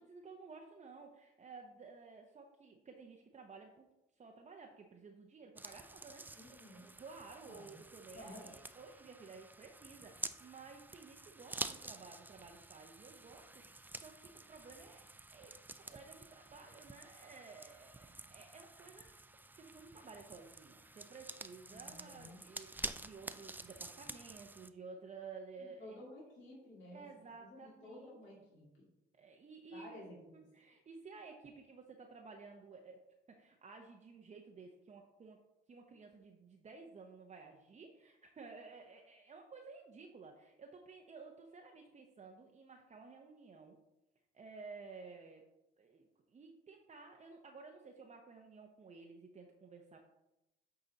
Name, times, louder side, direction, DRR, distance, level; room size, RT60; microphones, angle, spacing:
voice 1, 0.0-3.9 4.2-19.2 19.6-26.0 26.9-28.2 29.1-33.0 33.3-35.4 35.7-43.8 44.3-45.4 45.8-50.0, right 4 dB, 35° right, 2 dB, 0.8 m, -54 dB
sound 1, 5.6-24.7, right 2 dB, 10° right, 0.4 m, -49 dB
voice 2, 6.3-6.9 7.4-7.8 8.1-8.6 21.7-22.4 25.6-27.1 27.4-28.9 29.7-30.2, left 1 dB, 70° left, -5 dB, 2.2 m, -53 dB
8.1 x 4.0 x 4.0 m, 0.92 s
cardioid pair, 90°, 20 cm